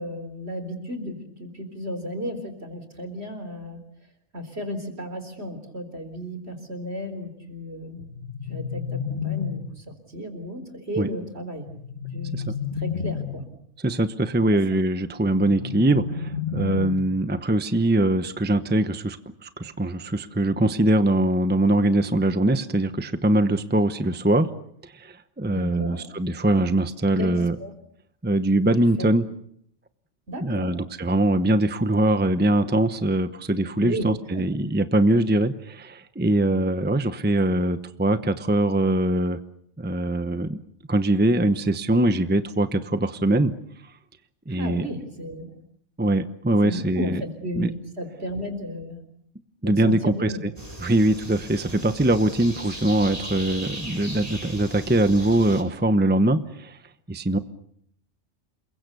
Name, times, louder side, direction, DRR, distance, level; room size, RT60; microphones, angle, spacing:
voice 1, 0.0-3.8 4.3-8.1 8.5-11.7 12.1-12.4 12.7-13.5 14.5-14.6 25.5-26.0 27.2-27.7 29.0-29.1 30.3-30.7 33.8-34.5 44.5-45.5 46.6-49.0 49.6-50.4, equal, 60° right, 8 dB, 4.2 m, -34 dB
sound 1, 8.0-10.0 11.7-13.6 15.4-17.3, left 7 dB, 50° left, 1.6 m, -31 dB
voice 2, 13.8-24.5 24.8-27.6 28.2-29.2 30.4-39.4 39.8-40.6 40.9-43.5 44.5-44.9 46.0-47.2 47.6-47.7 49.6-50.3 50.8-56.8 57.1-57.4, right 1 dB, 10° right, 11 dB, 0.8 m, -22 dB
sound 2, 50.6-55.6, right 1 dB, 30° right, 5.2 m, -38 dB
28.0 x 22.5 x 6.8 m, 0.69 s
omnidirectional pair, 1.2 m